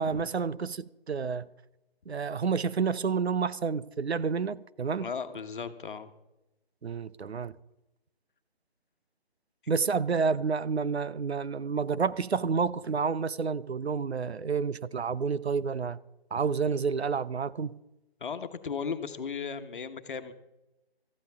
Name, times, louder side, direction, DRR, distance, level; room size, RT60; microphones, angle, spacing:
voice 1, 0.0-1.5 2.1-5.1 6.8-7.5 9.7-16.0 16.3-17.7, right 5 dB, 90° right, 0.7 m, -29 dB
voice 2, 5.0-6.1 18.2-20.3, left 6 dB, 55° left, 1.3 m, -36 dB
17.5 x 14.0 x 3.6 m
figure-of-eight pair, 155°, 31 cm